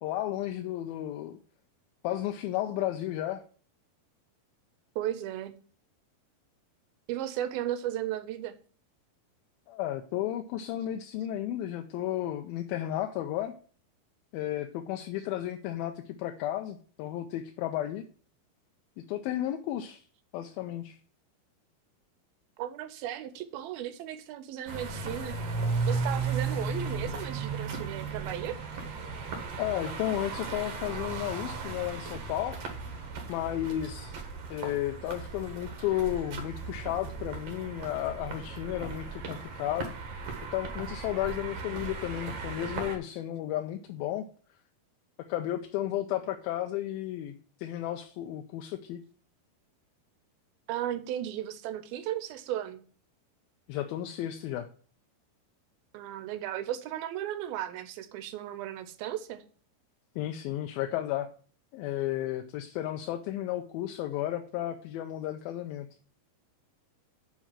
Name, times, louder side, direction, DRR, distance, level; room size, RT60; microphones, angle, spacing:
voice 1, 0.0-1.4 2.0-3.4 9.7-13.5 14.3-18.0 19.1-20.0 20.3-21.0 29.6-32.6 33.3-34.2 34.5-39.9 40.5-44.2 45.2-49.0 53.7-54.7 60.2-61.3 61.7-65.9, left 13 dB, 80° left, 5 dB, 2.4 m, -33 dB
voice 2, 5.0-5.6 7.1-8.6 22.6-25.4 25.9-28.6 50.7-52.8 55.9-59.4, right 12 dB, 80° right, 11 dB, 2.5 m, -35 dB
sound 1, 24.7-43.0, right 4 dB, 55° right, 2.1 m, -36 dB
7.3 x 5.6 x 7.4 m, 0.43 s
omnidirectional pair, 4.5 m